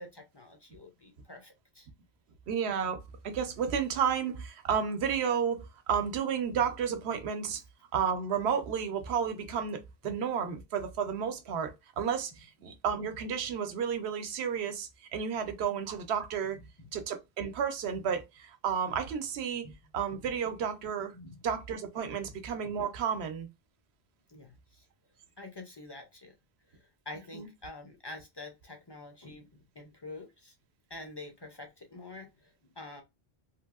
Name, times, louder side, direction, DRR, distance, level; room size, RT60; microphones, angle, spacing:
voice 1, 0.0-1.9 19.6-19.7 21.1-21.4 24.3-24.8 25.4-26.3 26.7-29.5 29.8-30.5 30.9-33.0, left 2 dB, 35° left, 0.4 m, -47 dB
voice 2, 2.5-7.6 7.9-16.6 16.9-21.1 21.4-23.5 27.3-27.5, right 7 dB, 80° right, 0.9 m, -32 dB
3.2 x 2.6 x 2.3 m
omnidirectional pair, 1.1 m